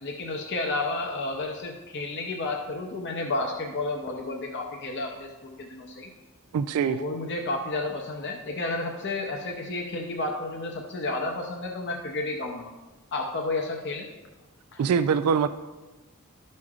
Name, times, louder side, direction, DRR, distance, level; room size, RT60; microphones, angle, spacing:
voice 1, 0.0-6.1 6.8-12.7 13.1-14.1 14.7-14.8, left 2 dB, 50° left, 1 dB, 0.6 m, -31 dB
voice 2, 6.5-7.0 14.8-15.5, right 6 dB, 85° right, 11 dB, 0.3 m, -23 dB
12.0 x 6.3 x 2.4 m, 1.2 s
head